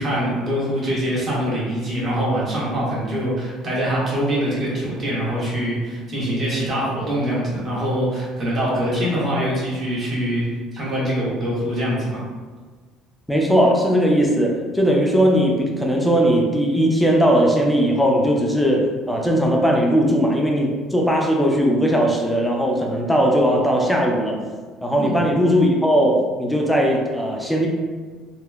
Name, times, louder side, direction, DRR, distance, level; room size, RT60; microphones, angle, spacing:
voice 1, 0.0-10.5 10.7-12.2 24.9-25.2, equal, 30° right, -6 dB, 0.9 m, -24 dB
voice 2, 13.3-24.4 24.8-27.7, equal, ahead, -1 dB, 0.4 m, -18 dB
2.8 x 2.0 x 2.2 m, 1.4 s
cardioid pair, 135°, 0 cm